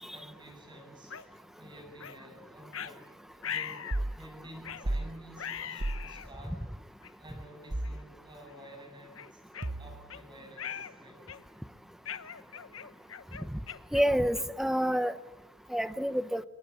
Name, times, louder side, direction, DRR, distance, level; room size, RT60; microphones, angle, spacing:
voice 1, 0.1-6.7 7.2-9.4 9.8-11.2, right 1 dB, 25° right, 4 dB, 8.0 m, -51 dB
sound 1, 1.1-1.3 2.0-2.2 2.7-2.9 3.4-4.0 4.6-4.9 5.4-6.3 7.0-7.1 7.8-8.0 8.5-8.6 9.2-10.2 10.6-10.9 11.3-11.6 12.1-14.6, left 8 dB, 75° left, 1.1 m, -41 dB
sound 2, 3.9-4.2 4.8-5.1 5.8-6.1 7.7-8.0 9.6-10.1, right 1 dB, 40° right, 1.0 m, -32 dB
voice 2, 13.9-15.1 15.7-16.4, equal, ahead, 13 dB, 0.8 m, -28 dB
26.5 x 22.5 x 8.6 m, 0.97 s
head